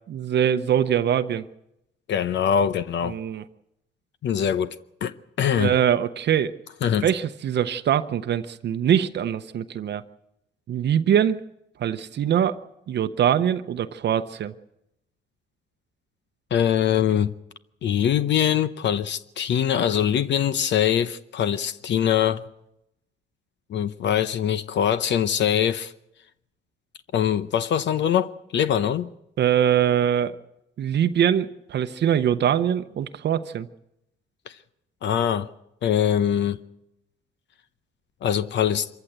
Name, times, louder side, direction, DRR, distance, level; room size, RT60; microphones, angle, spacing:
voice 1, 0.1-1.4 3.0-3.4 5.6-6.5 7.0-10.0 10.7-11.4 11.8-12.6 12.9-14.5 29.4-30.4 30.8-33.7, right 9 dB, 60° right, 0.8 m, -23 dB
voice 2, 2.1-3.2 4.2-4.7 5.0-5.7 6.8-7.1 16.5-17.3 17.8-22.5 23.7-25.9 27.1-29.1 34.5-34.6 35.0-35.5 35.8-36.6 38.2-38.9, left 9 dB, 65° left, 0.8 m, -23 dB
25.5 x 15.0 x 8.0 m
cardioid pair, 90°, 20 cm